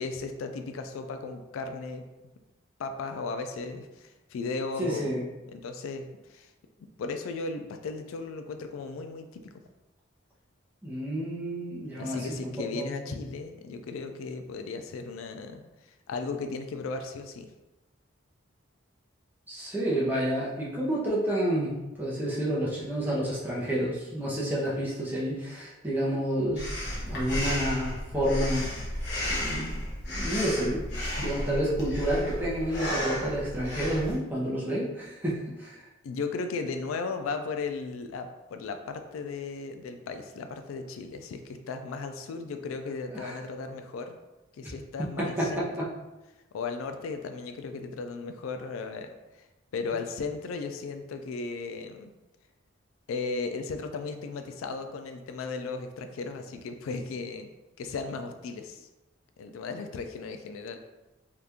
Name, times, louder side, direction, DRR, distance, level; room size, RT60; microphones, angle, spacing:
voice 1, 0.0-2.0 2.8-5.1 5.5-6.5 7.0-9.5 12.0-17.5 36.0-44.2 44.5-45.7 46.5-49.5 49.7-52.1 53.1-57.5 57.8-58.9 59.4-60.8, left 4 dB, 85° left, 7 dB, 0.3 m, -36 dB
voice 2, 4.8-5.3 10.8-12.2 12.8-13.1 19.5-26.7 27.0-28.7 29.2-29.7 30.1-30.8 31.2-35.8 43.1-43.3 45.0-45.1 45.4-45.5 45.8-45.9, equal, 10° right, -6 dB, 0.7 m, -29 dB
Breathing, 26.6-34.2, equal, 55° left, 0.9 m, -33 dB
2.8 x 2.4 x 3.4 m, 1.0 s
head